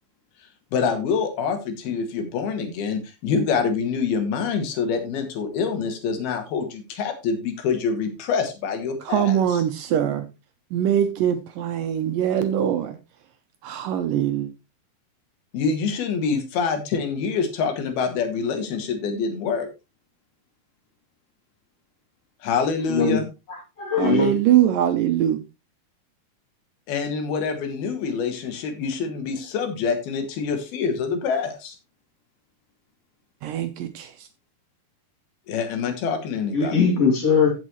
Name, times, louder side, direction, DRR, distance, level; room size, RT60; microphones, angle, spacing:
voice 1, 0.7-9.6 15.5-19.7 22.4-23.3 26.9-31.8 35.5-36.8, left 5 dB, 75° left, 3.6 m, -26 dB
voice 2, 9.1-10.3 10.7-12.9 13.6-14.5 24.0-25.4 33.4-34.1, right 10 dB, 75° right, 2.2 m, -22 dB
voice 3, 22.9-23.2 23.5-24.3 36.5-37.5, left 5 dB, 45° left, 3.4 m, -21 dB
15.0 x 6.5 x 3.0 m
omnidirectional pair, 4.4 m